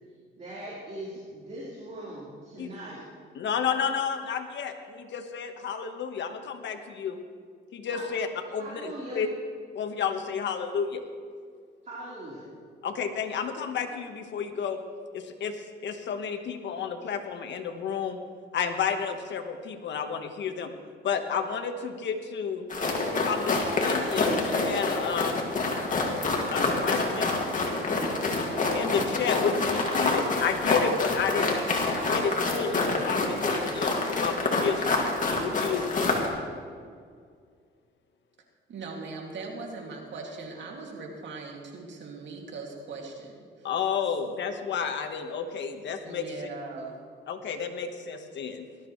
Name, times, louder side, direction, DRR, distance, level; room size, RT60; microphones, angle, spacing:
voice 1, 0.3-3.0 7.9-8.1 8.6-9.2 11.8-12.5, right 1 dB, 35° right, -8 dB, 4.2 m, -40 dB
voice 2, 3.3-7.2 7.7-8.3 8.5-9.3 9.7-11.0 12.8-14.8 15.1-18.2 18.5-20.7 21.0-22.7 23.2-25.4 26.5-27.4 28.7-31.5 32.0-34.9 35.4-35.9 43.6-46.5 47.3-48.7, left 6 dB, 65° left, 6 dB, 1.4 m, -31 dB
sound 1, 22.7-36.3, left 3 dB, 40° left, 2.3 m, -27 dB
voice 3, 38.7-43.7 46.0-47.0, right 3 dB, 65° right, 0 dB, 2.5 m, -40 dB
19.0 x 13.0 x 3.2 m, 2.1 s
cardioid pair, 90°, 20 cm